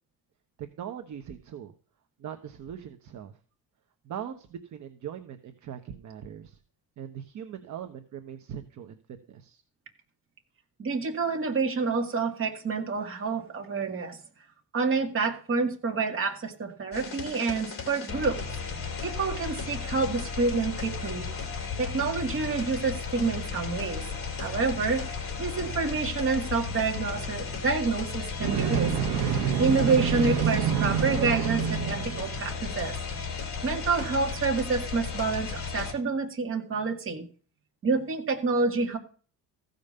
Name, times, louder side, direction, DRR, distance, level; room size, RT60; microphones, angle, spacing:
voice 1, 0.6-1.7 2.2-3.4 4.0-6.6 7.0-9.0 9.3-9.6, right 9 dB, 50° right, 6 dB, 1.0 m, -40 dB
voice 2, 10.8-14.2 14.7-18.4 19.0-21.3 21.8-24.0 24.4-25.0 25.4-28.9 29.6-32.9 33.6-37.3 37.8-39.0, right 4 dB, 35° right, 3 dB, 2.1 m, -28 dB
sound 1, 16.9-35.9, left 5 dB, 35° left, 3.0 m, -35 dB
sound 2, 28.4-32.6, right 8 dB, 85° right, 1.2 m, -27 dB
15.0 x 5.3 x 6.7 m, 0.40 s
cardioid pair, 140°, 37 cm